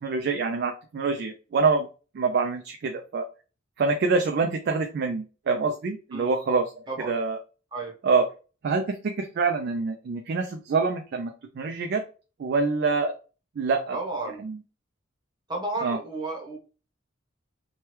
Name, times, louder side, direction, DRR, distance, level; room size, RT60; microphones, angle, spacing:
voice 1, 0.0-1.9 2.1-3.3 3.8-6.7 7.1-7.4 8.0-8.3 8.6-12.0 12.4-13.1 13.6-14.0 14.4-14.6 15.8-16.0, right 4 dB, 55° right, 5 dB, 0.3 m, -26 dB
voice 2, 13.9-14.4 15.5-16.6, right 2 dB, 20° right, -1 dB, 0.8 m, -32 dB
3.2 x 2.2 x 2.9 m, 0.35 s
head